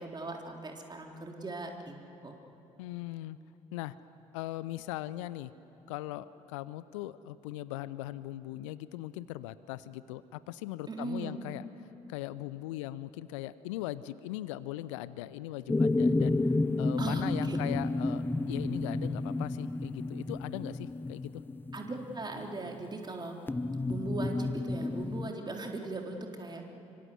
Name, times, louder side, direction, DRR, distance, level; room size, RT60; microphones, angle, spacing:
voice 1, 0.0-2.0 2.2-2.4 10.9-11.4 17.0-17.6 21.7-23.4 23.9-26.6, right 3 dB, 25° right, 2 dB, 3.7 m, -39 dB
voice 2, 2.8-3.4 3.7-3.9 4.3-5.5 5.9-11.6 12.1-16.5 16.8-21.4, left 15 dB, 70° left, 17 dB, 0.6 m, -39 dB
sound 1, 15.7-22.5 23.5-25.3, left 2 dB, 10° left, 0.7 m, -31 dB
26.5 x 25.0 x 8.0 m, 3.0 s
figure-of-eight pair, 50°, 17 cm